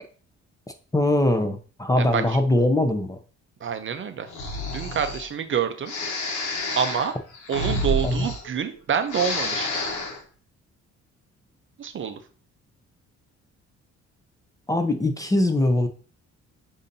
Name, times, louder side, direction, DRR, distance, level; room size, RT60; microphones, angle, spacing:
voice 1, 0.9-3.2 8.0-8.3 14.7-15.9, left 1 dB, 10° left, 6 dB, 0.6 m, -22 dB
voice 2, 3.6-4.3 4.7-5.9 6.8-7.1 7.5-9.7 11.8-12.2, right 7 dB, 40° right, 9 dB, 0.5 m, -27 dB
Breathing, 4.3-5.3 5.9-8.8 9.0-10.2, left 1 dB, 85° left, 1.0 m, -29 dB
6.7 x 2.7 x 2.6 m, 0.39 s
cardioid pair, 90°, 30 cm